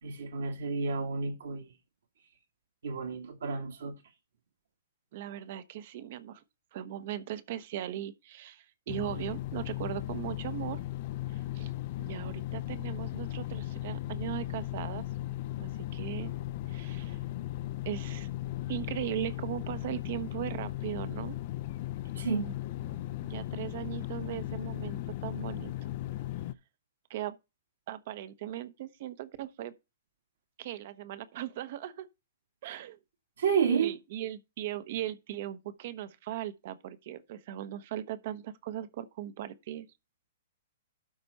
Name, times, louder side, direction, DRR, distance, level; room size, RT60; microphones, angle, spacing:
voice 1, 0.0-1.7 2.8-3.9 22.2-22.5 33.4-34.0, right 6 dB, 75° right, 2.1 m, -30 dB
voice 2, 5.1-6.4 6.7-10.8 11.3-11.7 12.0-15.1 15.6-16.3 16.7-17.2 17.8-18.3 18.7-21.4 23.2-25.7 27.1-27.4 27.9-29.7 30.6-32.1 32.6-33.0 33.8-39.9, right 12 dB, 55° right, 1.0 m, -38 dB
sound 1, 8.9-26.5, left 15 dB, 50° left, 0.6 m, -37 dB
12.5 x 4.4 x 4.2 m
hypercardioid pair, 120°, 0 cm